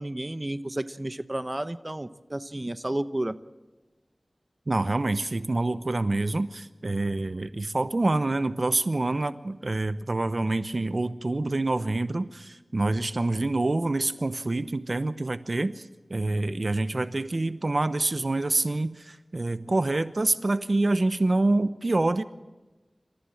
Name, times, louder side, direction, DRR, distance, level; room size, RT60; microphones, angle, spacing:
voice 1, 0.0-3.3, right 1 dB, 30° right, 12 dB, 0.9 m, -32 dB
voice 2, 4.7-22.2, right 2 dB, 60° right, 12 dB, 0.9 m, -26 dB
27.5 x 15.0 x 7.7 m, 1.1 s
wide cardioid pair, 50°, 0 cm